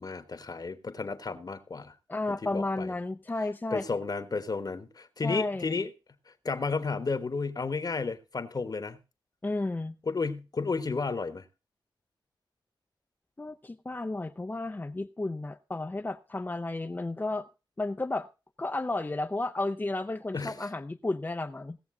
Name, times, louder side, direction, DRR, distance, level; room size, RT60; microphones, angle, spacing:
voice 1, 0.0-1.9 2.5-2.9 3.7-5.9 6.4-9.0 10.1-11.4 20.3-20.5, left 4 dB, 50° left, 1.2 m, -32 dB
voice 2, 2.1-3.9 5.2-5.8 9.4-10.0 13.4-17.5 17.8-18.3 18.6-21.8, left 2 dB, 25° left, 0.5 m, -33 dB
17.5 x 7.0 x 3.7 m
cardioid pair, 60°, 9 cm